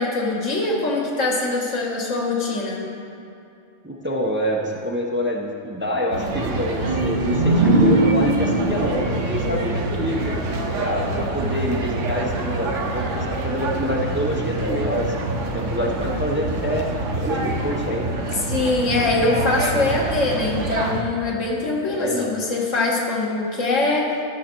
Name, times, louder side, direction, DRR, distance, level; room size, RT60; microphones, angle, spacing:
voice 1, 0.0-2.9 18.3-24.1, left 2 dB, 85° left, -2 dB, 1.7 m, -23 dB
voice 2, 3.8-10.4 10.8-15.1 15.5-16.9 17.2-18.1 21.9-22.3, equal, 15° right, -1 dB, 0.5 m, -26 dB
sound 1, 6.1-21.0, right 2 dB, 80° right, 1.2 m, -26 dB
sound 2, 6.8-10.5, right 1 dB, 50° right, 1.4 m, -21 dB
12.0 x 6.3 x 4.4 m, 2.6 s
omnidirectional pair, 1.3 m